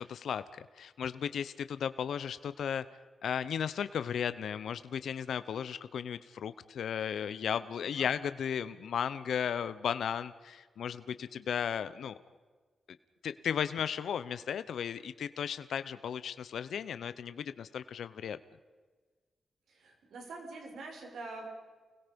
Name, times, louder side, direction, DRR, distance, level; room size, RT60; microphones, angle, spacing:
voice 1, 0.0-2.8 3.2-12.2 13.2-18.4, left 8 dB, 85° left, 14 dB, 0.8 m, -35 dB
voice 2, 7.8-8.1 19.7-21.5, right 3 dB, 90° right, 2 dB, 5.8 m, -45 dB
29.5 x 21.0 x 5.3 m, 1.4 s
wide cardioid pair, 120°, 0 cm